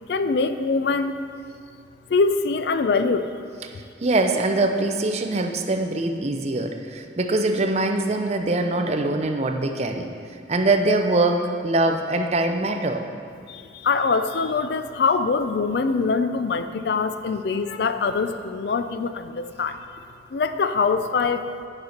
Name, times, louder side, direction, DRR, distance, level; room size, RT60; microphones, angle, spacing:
voice 1, 0.1-1.2 2.1-3.3 13.5-19.8 20.3-21.5, left 4 dB, 60° left, 10 dB, 0.4 m, -23 dB
voice 2, 4.0-10.1 10.5-13.0, right 2 dB, 35° right, 5 dB, 0.6 m, -23 dB
8.1 x 6.6 x 5.7 m, 2.3 s
head